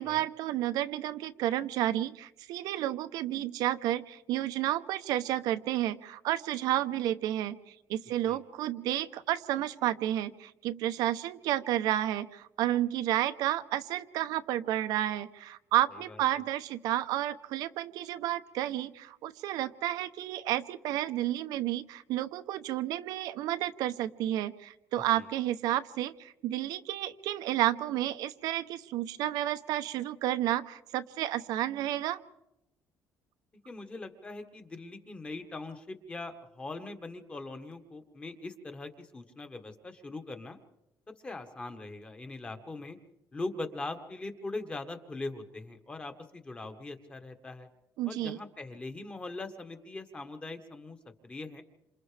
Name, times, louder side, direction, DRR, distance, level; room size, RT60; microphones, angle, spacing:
voice 1, 0.0-32.2 48.0-48.4, right 13 dB, 80° right, 12 dB, 0.8 m, -31 dB
voice 2, 33.6-40.6 41.2-43.0 43.3-47.7 48.1-51.0 51.2-51.6, left 2 dB, 20° left, 7 dB, 1.4 m, -41 dB
27.5 x 27.5 x 3.4 m, 0.89 s
cardioid pair, 155°, 7 cm